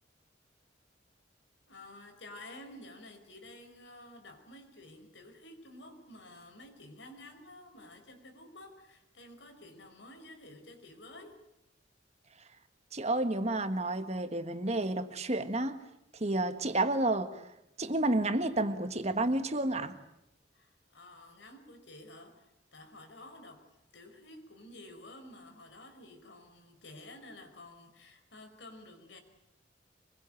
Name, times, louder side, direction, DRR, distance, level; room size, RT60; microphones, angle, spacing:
voice 1, 1.7-11.4 20.5-29.2, left 1 dB, 75° left, 6 dB, 5.1 m, -51 dB
voice 2, 12.9-15.8 16.2-17.5 17.8-20.0, right 2 dB, 35° right, 9 dB, 1.6 m, -30 dB
24.5 x 22.0 x 9.2 m, 0.82 s
head